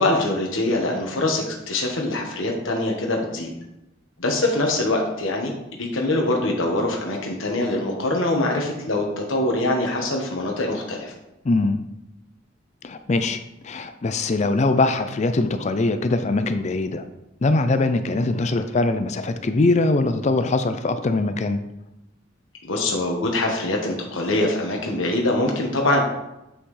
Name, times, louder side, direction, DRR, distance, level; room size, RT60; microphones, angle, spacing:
voice 1, 0.0-3.5 4.2-11.1 22.6-26.0, left 2 dB, 80° left, 0 dB, 1.4 m, -23 dB
voice 2, 11.5-11.8 12.8-13.4 13.6-17.0 17.4-21.6, left 2 dB, 35° left, 9 dB, 0.4 m, -22 dB
8.6 x 5.6 x 3.3 m, 0.92 s
head